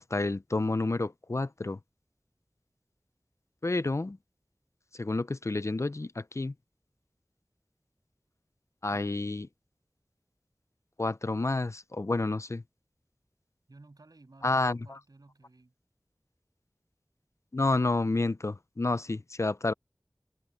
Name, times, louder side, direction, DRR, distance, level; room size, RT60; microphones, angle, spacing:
voice 1, 0.0-1.8 3.6-4.2 4.9-6.5 8.8-9.5 11.0-12.6 14.4-14.8 17.5-19.7, left 2 dB, 45° left, 0.6 m, -29 dB
voice 2, 13.7-15.7, right 2 dB, 75° right, 7.5 m, -56 dB
wide cardioid pair, 45°, 7 cm